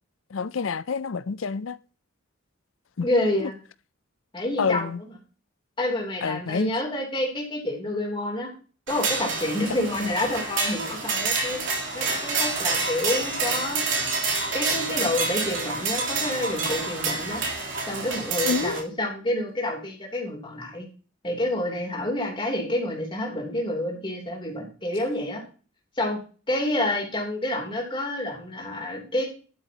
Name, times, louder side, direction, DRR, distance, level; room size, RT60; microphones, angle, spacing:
voice 1, 0.3-1.8 3.0-3.1 3.4-3.5 4.6-5.0 6.2-6.7 9.7-9.8 18.4-18.8, left 5 dB, 70° left, 0.5 m, -28 dB
voice 2, 3.0-3.5 4.3-4.9 5.8-8.5 8.9-11.6 11.9-13.8 14.5-17.4 17.9-20.9 21.2-25.4 26.0-26.2 26.5-29.2, left 1 dB, 25° left, 3.3 m, -28 dB
sound 1, 8.9-18.8, right 4 dB, 60° right, 3.5 m, -28 dB
12.0 x 9.8 x 2.9 m
head